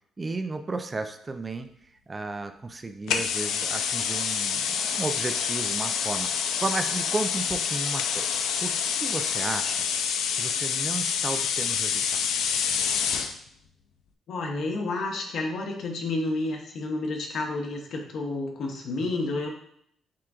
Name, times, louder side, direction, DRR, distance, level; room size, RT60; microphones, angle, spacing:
voice 1, 0.2-1.7 2.1-9.9 10.3-12.0, right 3 dB, 25° right, 8 dB, 0.4 m, -33 dB
sound 1, 3.1-13.3, left 7 dB, 85° left, 0.3 m, -27 dB
voice 2, 14.3-19.5, left 2 dB, 65° left, 1 dB, 0.8 m, -30 dB
7.4 x 2.5 x 2.4 m, 0.68 s
cardioid pair, 90°, 0 cm